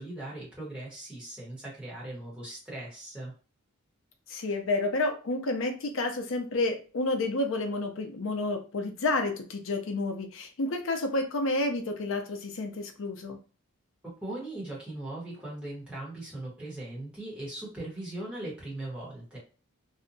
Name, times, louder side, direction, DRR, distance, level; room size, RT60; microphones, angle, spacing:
voice 1, 0.0-3.3 14.2-19.4, right 1 dB, 5° right, -7 dB, 1.0 m, -39 dB
voice 2, 4.3-13.4, left 2 dB, 65° left, 5 dB, 0.5 m, -30 dB
2.7 x 2.1 x 2.6 m, 0.37 s
head